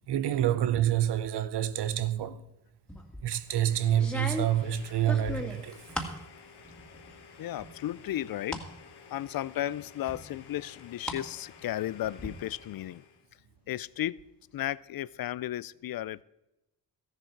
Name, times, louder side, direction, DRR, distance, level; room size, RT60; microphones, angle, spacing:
voice 1, 0.1-2.4 3.2-6.0, right 11 dB, 90° right, 0.7 m, -28 dB
sound 1, 2.9-3.3 3.9-6.2 6.6-7.2 7.6-8.7 9.1-9.2 10.1-11.2 11.5-12.3, left 1 dB, ahead, 2.1 m, -37 dB
Domestic sounds home sounds, 3.3-13.3, left 6 dB, 80° left, 1.3 m, -53 dB
voice 2, 7.4-8.7 9.1-13.0 13.7-14.2 14.5-16.2, left 13 dB, 65° left, 0.5 m, -34 dB
13.5 x 11.0 x 4.6 m
cardioid pair, 55°, 39 cm